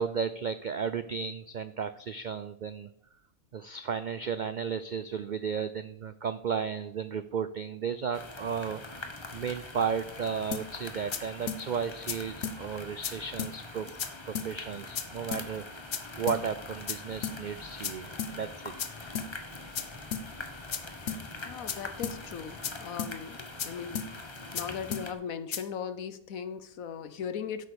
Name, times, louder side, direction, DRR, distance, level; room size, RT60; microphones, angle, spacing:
voice 1, 0.0-2.9 3.5-13.9 14.3-15.6 16.2-18.7, right 6 dB, 85° right, 12 dB, 0.4 m, -34 dB
sound 1, 8.1-25.1, left 2 dB, 20° left, 1.0 m, -44 dB
sound 2, 10.5-10.7 11.1-11.2 11.5-11.6 12.1-12.2 12.4-12.6 13.0-13.1 13.4-13.5 14.0-14.1 14.4-14.5 15.0-15.1 15.3-15.5 15.9-16.0 16.3-16.4 16.9-17.0 17.2-17.4 17.8-17.9 18.2-18.3 18.8-18.9 19.2-19.3 19.8-19.9 20.1-20.3 20.7-20.8 21.1-21.2 21.7-21.8 22.0-22.2 22.6-22.7 23.0-23.1 23.6-23.7 24.0-24.1 24.6-24.7 24.9-25.1 25.5-25.6, left 7 dB, 60° left, 1.2 m, -33 dB
voice 2, 21.4-24.2 24.5-27.7, left 7 dB, 75° left, 12 dB, 1.3 m, -38 dB
8.9 x 8.2 x 6.9 m, 0.73 s
omnidirectional pair, 1.5 m